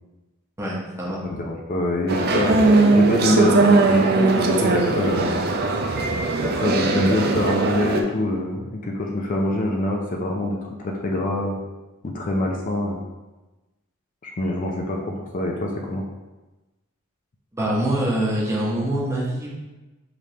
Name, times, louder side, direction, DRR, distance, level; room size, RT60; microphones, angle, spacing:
voice 1, 0.6-1.2 17.5-19.5, right 1 dB, 15° right, -5 dB, 0.9 m, -24 dB
voice 2, 1.2-2.5 2.9-5.5 6.4-11.6 12.0-13.0 14.2-16.0, left 1 dB, 40° left, 0 dB, 0.5 m, -25 dB
sound 1, 2.1-8.0, right 3 dB, 45° right, 0.4 m, -19 dB
5.0 x 3.3 x 2.8 m, 1.1 s
head